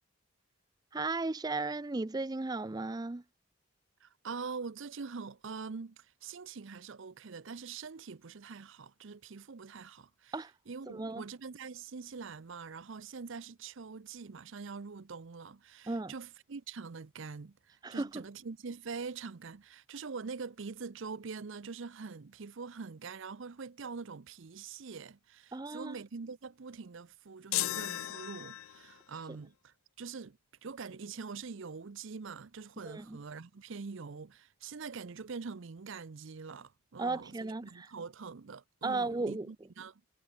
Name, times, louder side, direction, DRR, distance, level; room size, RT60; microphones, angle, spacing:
voice 1, 0.9-3.2 10.3-10.5 10.9-11.2 15.9-16.1 17.8-18.1 25.5-26.0 32.8-33.2 37.0-37.9 38.8-39.5, right 3 dB, 20° right, 0.4 m, -35 dB
voice 2, 4.0-10.4 10.7-40.0, right 5 dB, 60° right, 0.6 m, -44 dB
sound 1, 27.5-29.0, left 15 dB, 75° left, 0.4 m, -35 dB
head